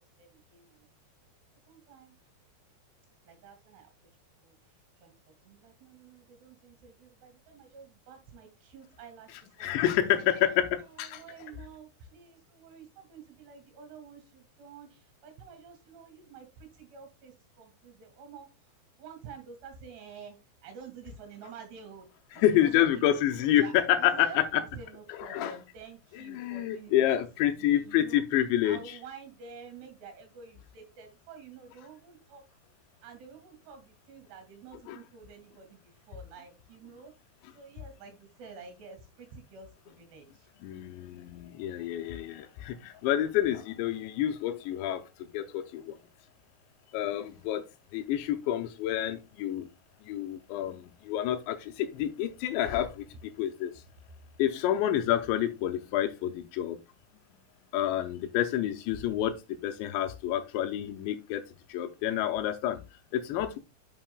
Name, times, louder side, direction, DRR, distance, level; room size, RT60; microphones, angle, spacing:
voice 1, 0.2-0.9 1.7-2.1 3.3-3.9 4.4-4.6 5.0-5.1 5.4-9.9 10.8-18.5 19.0-20.4 20.6-22.1 22.3-23.1 23.5-23.7 24.0-27.3 27.6-28.2 28.6-32.4 33.0-37.1 37.5-40.5 47.1-47.5, right 6 dB, 70° right, 4.1 m, -49 dB
voice 2, 9.3-11.2 22.3-24.6 25.1-25.6 26.1-29.0 34.9-35.0 40.6-45.0 45.3-45.9 46.9-47.7 47.9-49.7 50.0-53.1 53.4-53.7 54.4-56.8 57.7-62.8 63.1-63.6, left 11 dB, 85° left, 3.0 m, -28 dB
9.0 x 7.2 x 2.3 m
omnidirectional pair, 5.1 m